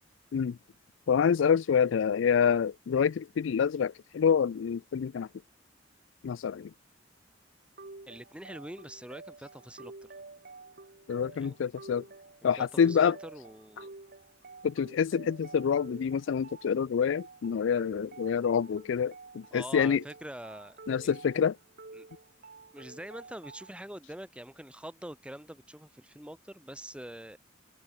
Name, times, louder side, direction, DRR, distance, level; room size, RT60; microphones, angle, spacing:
voice 1, 1.1-5.3 6.2-6.7 11.1-12.0 12.4-13.2 14.6-20.0 20.9-21.6, left 7 dB, 70° left, 0.4 m, -27 dB
sound 1, 7.8-23.8, right 3 dB, 50° right, 1.9 m, -50 dB
voice 2, 8.1-9.9 11.3-11.6 12.6-13.9 19.5-21.1 21.9-22.1 22.7-27.4, right 1 dB, 5° right, 1.6 m, -45 dB
head